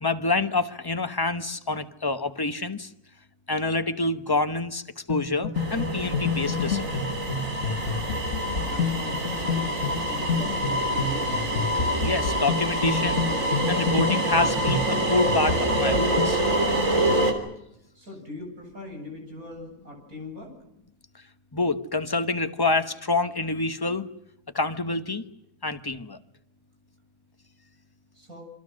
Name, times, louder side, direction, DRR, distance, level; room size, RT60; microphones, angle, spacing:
voice 1, 0.0-2.9 3.5-7.0 12.0-13.3 13.7-16.4 21.5-24.1 24.5-25.2 25.6-26.2, left 3 dB, 20° left, 9 dB, 1.0 m, -27 dB
sound 1, 5.1-16.4, left 5 dB, 55° left, 1.8 m, -29 dB
sound 2, 5.5-17.3, right 1 dB, 65° right, 3.9 m, -26 dB
voice 2, 8.3-11.4 17.9-20.5 28.1-28.4, left 2 dB, 80° right, 2 dB, 8.2 m, -41 dB
28.5 x 25.0 x 6.4 m, 0.83 s
omnidirectional pair, 1.5 m